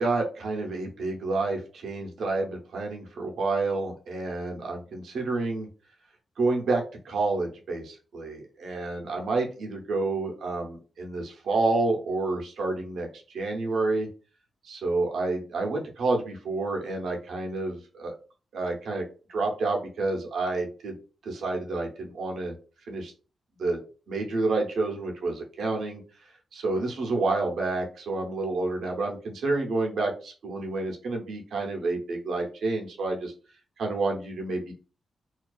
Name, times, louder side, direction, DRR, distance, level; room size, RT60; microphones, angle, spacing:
voice 1, 0.0-5.7 6.4-14.1 14.6-18.1 18.5-19.0 19.3-20.9 21.3-22.5 22.9-23.1 23.6-23.8 24.1-26.0 26.5-33.3 33.8-34.7, right 3 dB, 80° right, 1 dB, 0.6 m, -29 dB
2.4 x 2.3 x 2.3 m, 0.36 s
cardioid pair, 95°, 0 cm